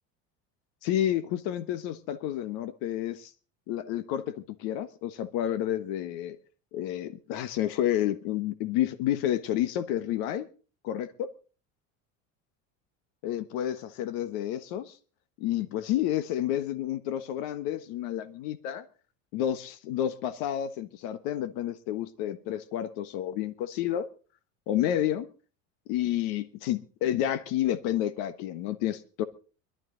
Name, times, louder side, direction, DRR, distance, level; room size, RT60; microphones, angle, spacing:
voice 1, 0.8-3.3 3.7-6.4 6.7-10.5 10.8-11.3 13.2-15.0 15.4-18.8 19.3-24.1 24.7-25.3 25.9-29.2, left 11 dB, 75° left, 1.4 m, -30 dB
22.0 x 12.0 x 3.9 m
supercardioid pair, 125°, 36 cm